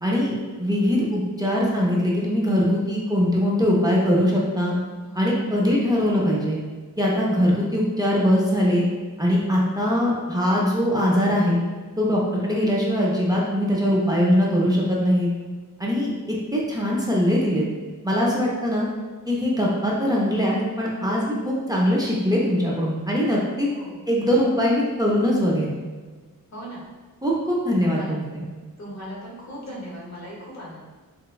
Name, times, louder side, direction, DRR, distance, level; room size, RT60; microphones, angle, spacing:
voice 1, 0.0-4.8 5.2-6.6 7.0-8.9 9.2-11.6 12.0-15.3 15.8-17.7 18.0-18.9 19.3-23.7 24.1-25.7 27.2-28.4, equal, 10° right, -4 dB, 0.4 m, -22 dB
voice 2, 5.0-5.5 23.7-24.1 26.5-26.8 27.8-28.2 28.8-30.8, equal, 50° left, -4 dB, 0.8 m, -38 dB
3.4 x 2.0 x 2.2 m, 1.4 s
wide cardioid pair, 130°, 35 cm